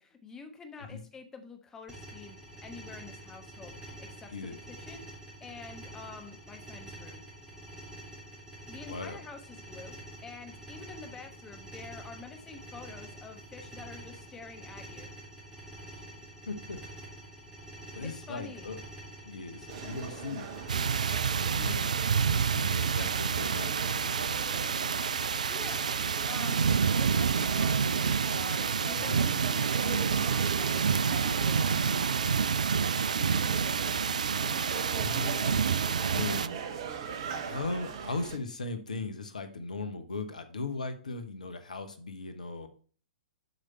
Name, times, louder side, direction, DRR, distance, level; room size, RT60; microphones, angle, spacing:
voice 1, 0.0-7.2 8.7-9.9 10.2-15.1 18.0-18.7 25.5-25.9 26.3-33.2, left 4 dB, 15° left, 5 dB, 1.1 m, -48 dB
sound 1, 1.9-21.8, right 1 dB, 10° right, 3.6 m, -47 dB
voice 2, 8.9-9.2 16.4-16.8 17.9-18.8 19.2-20.5 21.2-24.8 29.0-29.2 34.9-35.6 36.0-36.5 36.9-37.1 37.5-42.7, left 3 dB, 70° left, 9 dB, 1.0 m, -38 dB
sound 2, 19.7-38.4, right 7 dB, 50° right, 0.9 m, -40 dB
sound 3, 20.7-36.5, right 6 dB, 65° right, 0.4 m, -28 dB
8.0 x 5.0 x 4.3 m, 0.42 s
figure-of-eight pair, 110°, 4 cm